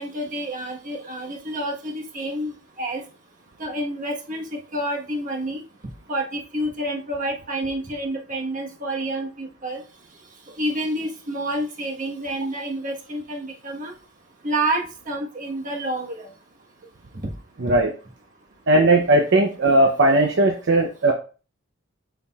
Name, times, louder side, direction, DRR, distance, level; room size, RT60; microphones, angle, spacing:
voice 1, 0.0-3.0 3.6-5.6 6.1-9.8 10.6-13.9 14.4-16.3 17.2-17.3, right 1 dB, 40° right, 0 dB, 1.4 m, -29 dB
voice 2, 17.6-17.9 18.7-21.1, right 2 dB, 65° right, 2 dB, 0.7 m, -17 dB
6.9 x 5.8 x 2.4 m, 0.36 s
head